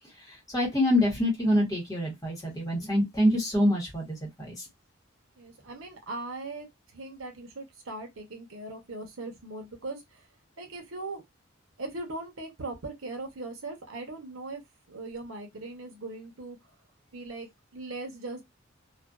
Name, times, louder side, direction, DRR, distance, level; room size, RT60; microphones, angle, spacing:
voice 1, 0.5-4.6, left 1 dB, 15° left, 1.0 m, -25 dB
voice 2, 5.4-6.7 6.9-10.2 10.6-11.2 11.8-14.6 14.9-16.6 17.1-18.4, right 2 dB, 85° right, 0.8 m, -39 dB
2.5 x 2.2 x 2.3 m
head